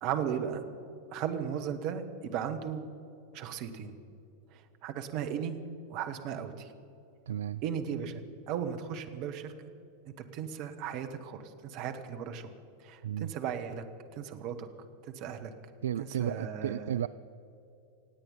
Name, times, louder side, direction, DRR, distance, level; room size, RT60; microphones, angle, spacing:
voice 1, 0.0-0.6 1.1-2.9 3.3-4.0 4.5-5.6 5.9-6.7 7.6-9.5 10.2-12.5 12.8-13.8 14.1-14.7 15.1-15.5 16.0-17.0, right 8 dB, 45° right, 7 dB, 1.3 m, -36 dB
voice 2, 7.3-7.6 13.0-13.3 15.8-17.1, right 10 dB, 60° right, 14 dB, 0.3 m, -33 dB
26.0 x 9.0 x 5.7 m, 2.7 s
figure-of-eight pair, 90°, 0 cm